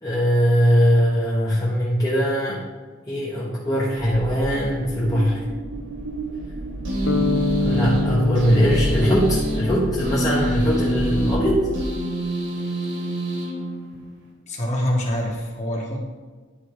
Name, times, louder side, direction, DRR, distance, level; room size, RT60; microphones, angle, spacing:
voice 1, 0.0-2.7 3.1-5.4 7.6-11.7, equal, 20° left, -7 dB, 1.1 m, -21 dB
sound 1, 4.0-11.9, right 1 dB, 60° right, 0.8 m, -31 dB
sound 2, 6.8-14.3, right 1 dB, 80° right, 2.7 m, -27 dB
sound 3, 7.1-11.3, left 4 dB, 85° left, 0.6 m, -28 dB
voice 2, 14.5-16.0, equal, 35° left, -2 dB, 1.6 m, -25 dB
10.0 x 4.7 x 4.9 m, 1.4 s
head